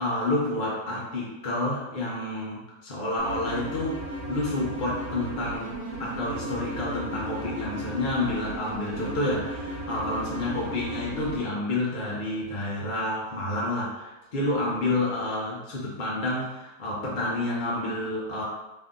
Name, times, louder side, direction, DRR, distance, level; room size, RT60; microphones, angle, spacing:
voice 1, 0.0-5.7 6.0-18.4, left 2 dB, 45° left, -6 dB, 0.6 m, -29 dB
sound 1, 3.2-11.4, right 1 dB, 75° right, 1.4 m, -35 dB
3.3 x 2.7 x 3.6 m, 1.0 s
omnidirectional pair, 1.8 m